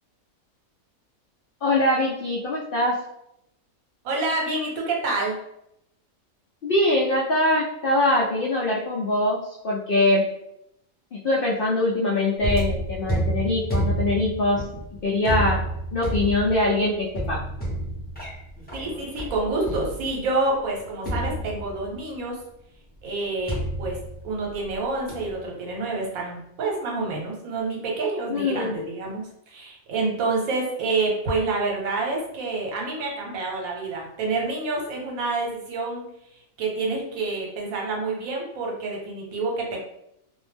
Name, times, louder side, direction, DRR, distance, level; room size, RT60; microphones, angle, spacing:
voice 1, 1.6-3.0 6.6-10.3 11.1-14.7 15.0-15.6 15.9-17.4 28.3-28.7, left 1 dB, 85° left, -4 dB, 0.5 m, -23 dB
voice 2, 4.0-5.3 18.7-22.4 23.0-24.0 24.2-36.0 36.6-39.8, right 3 dB, 75° right, -1 dB, 1.1 m, -28 dB
sound 1, 12.4-20.3 21.0-22.0 23.5-24.7 25.1-25.4, right 1 dB, 10° left, 0.6 m, -29 dB
2.5 x 2.0 x 3.3 m, 0.80 s
omnidirectional pair, 1.5 m